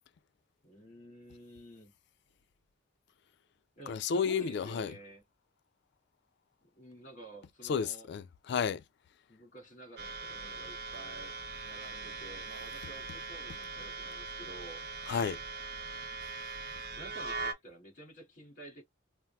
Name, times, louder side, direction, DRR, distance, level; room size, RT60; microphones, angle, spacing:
voice 1, 0.6-1.9 3.8-5.2 6.8-8.1 9.3-14.8 16.9-18.8, right 1 dB, 40° left, 2.2 m, -50 dB
voice 2, 3.9-4.9 7.6-8.8 15.1-15.4, left 6 dB, 60° left, 0.3 m, -32 dB
sound 1, 10.0-17.5, right 4 dB, 55° right, 0.7 m, -41 dB
4.4 x 2.0 x 2.2 m
head